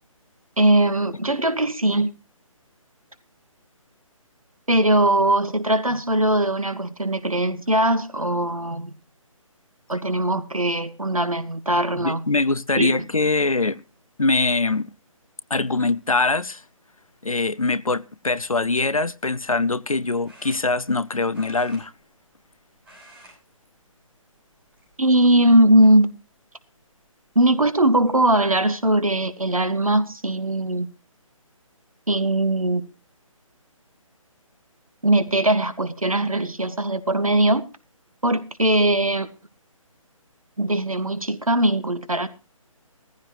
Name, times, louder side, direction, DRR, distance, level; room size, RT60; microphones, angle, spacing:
voice 1, 0.6-2.1 4.7-8.9 9.9-12.2 12.8-13.0 25.0-26.1 27.4-30.9 32.1-32.9 35.0-37.6 38.2-39.3 40.6-42.3, right 1 dB, 75° right, 1.8 m, -20 dB
voice 2, 12.0-13.8 14.2-14.9 15.5-16.6 17.2-21.9, left 3 dB, 75° left, 0.8 m, -23 dB
sound 1, 20.2-21.0 21.3-22.5 22.8-23.4 23.7-23.9 24.7-25.2 25.8-25.9 27.3-27.4 27.8-28.1, right 1 dB, 5° right, 6.8 m, -50 dB
17.5 x 14.5 x 3.2 m
figure-of-eight pair, 145°, 18 cm